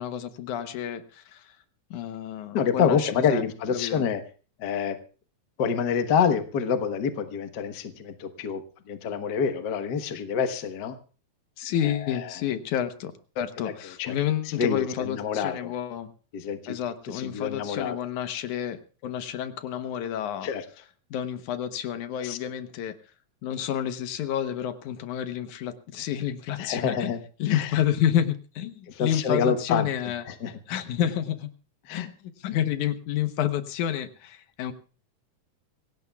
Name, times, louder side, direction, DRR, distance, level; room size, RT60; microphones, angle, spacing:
voice 1, 0.0-1.6 1.9-4.0 11.6-16.1 16.7-20.5 21.1-23.0 23.4-30.2 30.7-31.5 31.9-32.0 32.4-34.7, left 10 dB, 85° left, 10 dB, 2.5 m, -29 dB
voice 2, 2.5-4.2 4.6-5.0 5.6-11.0 11.8-12.3 13.6-13.7 14.0-14.2 14.6-15.7 16.3-16.7 17.1-18.0 20.4-20.6 22.2-22.4 26.6-27.2 27.5-27.7 28.9-29.9 30.3-30.5 31.8-32.1, left 6 dB, 50° left, 8 dB, 1.3 m, -27 dB
25.5 x 17.0 x 2.3 m, 0.36 s
omnidirectional pair, 3.4 m